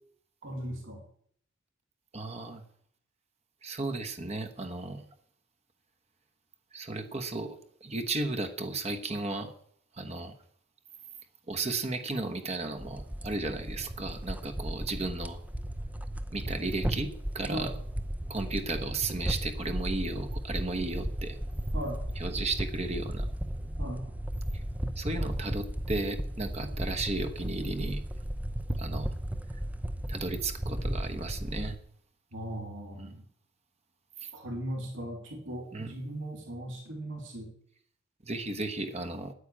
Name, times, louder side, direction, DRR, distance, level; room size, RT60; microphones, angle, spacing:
voice 1, 0.4-1.0 17.5-17.7 21.7-22.0 23.8-24.0 32.3-33.2 34.3-37.5, right 1 dB, 70° right, 0 dB, 3.7 m, -38 dB
voice 2, 2.1-2.6 3.6-5.0 6.7-9.5 9.9-10.3 11.5-15.4 16.3-17.7 18.3-21.4 22.2-23.3 24.5-24.6 25.0-28.0 28.8-29.1 30.1-31.8 33.0-33.1 34.2-34.3 35.7-35.9 38.2-39.3, right 2 dB, 30° right, 8 dB, 1.1 m, -34 dB
sound 1, 12.8-31.8, right 1 dB, 10° right, 0.6 m, -35 dB
9.8 x 9.6 x 8.5 m, 0.63 s
head